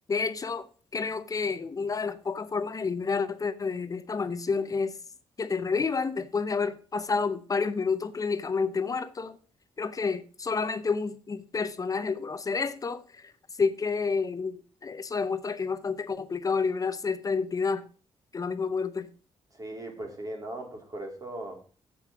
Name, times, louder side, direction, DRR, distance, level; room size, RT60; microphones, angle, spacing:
voice 1, 0.1-0.7 0.9-5.0 5.4-9.4 9.8-13.3 13.6-17.8 18.3-19.1, left 5 dB, 35° left, 0.7 m, -29 dB
voice 2, 19.6-21.6, right 1 dB, 35° right, 3.0 m, -38 dB
7.7 x 7.2 x 6.0 m
cardioid pair, 105°, 11 cm